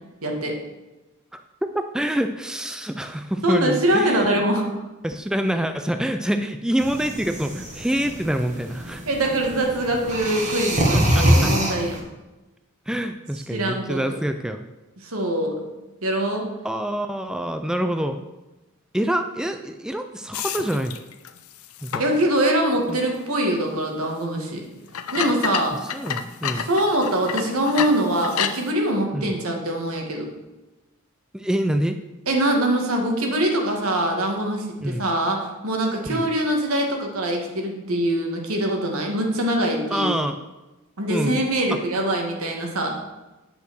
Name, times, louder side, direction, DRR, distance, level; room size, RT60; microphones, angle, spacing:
voice 1, 0.2-0.6 3.4-4.6 9.1-12.0 13.5-14.0 15.0-15.7 16.0-16.5 22.0-24.6 25.1-25.8 26.5-30.3 32.3-40.1 41.0-43.0, right 1 dB, 80° right, 2 dB, 1.8 m, -23 dB
voice 2, 1.9-4.4 5.0-9.0 10.9-11.5 12.9-14.6 16.6-18.2 18.9-21.0 21.8-22.0 22.9-23.0 25.9-26.7 29.1-29.3 31.3-32.0 34.8-35.1 36.1-36.2 39.9-40.4 41.1-41.4, right 1 dB, 5° right, 7 dB, 0.3 m, -26 dB
sound 1, 6.8-12.0, equal, 35° right, 1.8 m, -24 dB
sound 2, 20.3-22.3 22.8-22.9 23.9-24.0 24.9-28.7, left 8 dB, 80° left, 0.6 m, -30 dB
8.7 x 5.5 x 6.2 m, 1.1 s
head